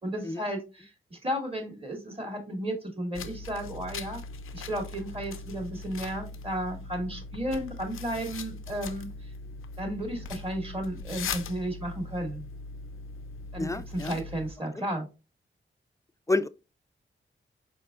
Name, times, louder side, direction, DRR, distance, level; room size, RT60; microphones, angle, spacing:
voice 1, 0.0-4.2 4.5-9.3 9.8-12.4 13.5-15.1, right 1 dB, 30° right, 2.1 m, -33 dB
sound 1, 3.1-14.5, left 4 dB, 85° left, 0.5 m, -40 dB
voice 2, 13.6-14.2 16.3-16.5, left 2 dB, 15° left, 0.4 m, -29 dB
4.6 x 4.6 x 2.4 m
cardioid pair, 60°, 21 cm